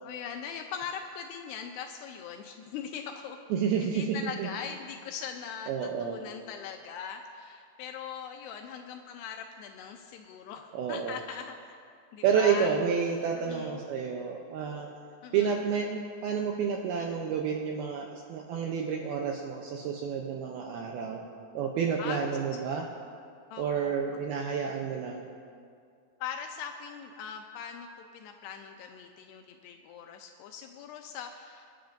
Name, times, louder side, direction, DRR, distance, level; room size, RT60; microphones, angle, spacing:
voice 1, 0.0-3.4 3.8-11.8 12.1-12.7 13.4-13.8 15.2-15.6 22.0-22.6 23.5-24.0 26.2-31.8, left 7 dB, 80° left, 4 dB, 2.5 m, -41 dB
voice 2, 3.5-4.5 5.7-6.2 10.7-11.2 12.2-14.9 15.3-21.3 21.5-22.9 23.6-25.3, right 6 dB, 80° right, 1 dB, 2.2 m, -30 dB
26.0 x 10.5 x 2.6 m, 2.3 s
omnidirectional pair, 5.1 m